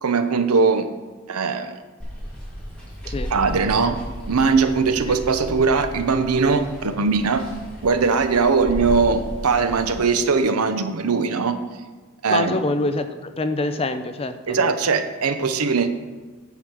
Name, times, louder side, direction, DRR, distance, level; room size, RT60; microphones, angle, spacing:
voice 1, 0.0-0.9 1.3-1.7 3.3-4.0 4.3-7.4 7.8-11.6 12.2-12.6 14.5-15.9, right 4 dB, 85° right, 9 dB, 0.7 m, -20 dB
Water, 2.0-10.0, equal, 5° left, 2.4 m, -34 dB
voice 2, 12.3-14.6, left 2 dB, 25° left, 9 dB, 0.5 m, -25 dB
9.5 x 5.0 x 6.0 m, 1.3 s
head